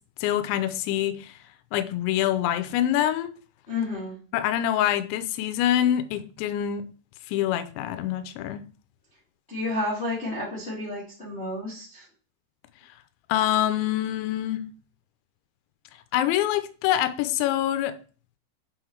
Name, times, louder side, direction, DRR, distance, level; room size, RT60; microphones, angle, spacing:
voice 1, 0.2-1.3 1.7-3.3 4.3-6.8 7.3-8.6 13.3-14.6 16.1-18.0, left 12 dB, 85° left, 2.9 m, -25 dB
voice 2, 3.7-4.1 9.5-12.0, left 2 dB, 20° left, 1.8 m, -31 dB
7.7 x 3.9 x 4.6 m
omnidirectional pair, 5.4 m